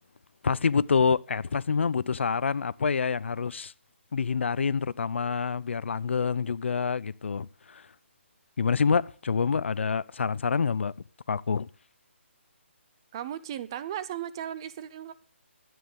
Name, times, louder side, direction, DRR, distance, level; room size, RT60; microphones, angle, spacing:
voice 1, 0.4-3.7 4.1-7.8 8.6-10.9 11.3-11.7, left 5 dB, 65° left, 0.6 m, -27 dB
voice 2, 13.1-15.1, right 10 dB, 20° right, 0.6 m, -36 dB
12.5 x 8.9 x 8.0 m
hypercardioid pair, 170°, 7 cm